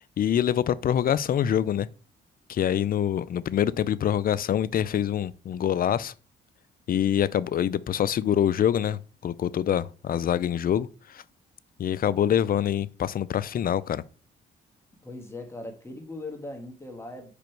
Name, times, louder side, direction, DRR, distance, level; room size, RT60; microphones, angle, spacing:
voice 1, 0.2-1.9 2.5-6.1 6.9-11.2 11.8-14.0, left 10 dB, 45° left, 0.4 m, -25 dB
voice 2, 15.0-17.3, left 2 dB, 15° left, 1.5 m, -39 dB
5.1 x 5.0 x 4.6 m
cardioid pair, 90°, 20 cm